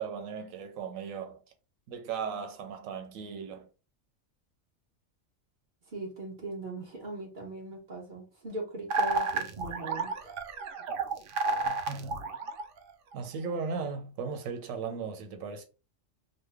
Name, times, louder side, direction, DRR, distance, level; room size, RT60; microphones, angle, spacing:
voice 1, 0.0-1.4 1.9-3.7 11.6-12.2 13.1-15.6, right 5 dB, 90° right, 1.1 m, -37 dB
voice 2, 5.9-10.3, right 2 dB, 40° right, 1.1 m, -40 dB
sound 1, 8.9-13.1, right 3 dB, 65° right, 0.5 m, -31 dB
3.1 x 2.2 x 3.3 m
omnidirectional pair, 1.4 m